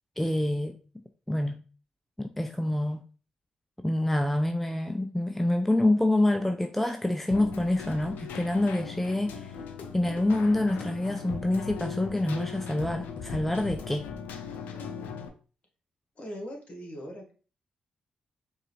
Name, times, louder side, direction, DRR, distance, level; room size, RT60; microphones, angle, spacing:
voice 1, 0.2-0.8 1.3-1.6 2.2-3.0 3.8-9.5 9.9-14.1, left 1 dB, 5° left, 0.4 m, -26 dB
Keyboard (musical), 7.3-15.3, left 6 dB, 80° left, 0.5 m, -39 dB
voice 2, 16.2-17.3, equal, 45° left, 1.5 m, -40 dB
4.6 x 2.5 x 3.0 m
hypercardioid pair, 40°, 3 cm